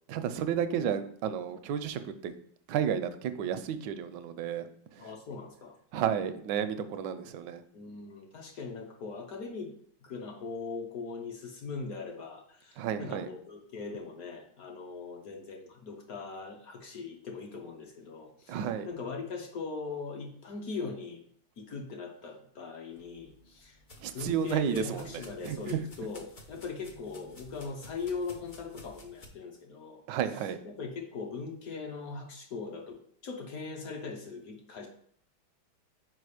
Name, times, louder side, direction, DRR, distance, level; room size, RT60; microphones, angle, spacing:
voice 1, 0.1-2.4 2.7-5.1 5.9-7.6 12.8-13.3 18.5-18.9 24.0-25.1 25.4-25.8 30.1-30.6, right 8 dB, 75° right, 10 dB, 1.1 m, -32 dB
voice 2, 5.0-5.8 7.7-9.7 10.0-21.2 21.6-23.8 24.1-30.0 30.6-34.9, left 4 dB, 60° left, 1 dB, 1.1 m, -40 dB
sound 1, 22.9-29.3, left 2 dB, 75° left, 0.4 m, -53 dB
4.8 x 4.2 x 4.8 m, 0.63 s
omnidirectional pair, 2.1 m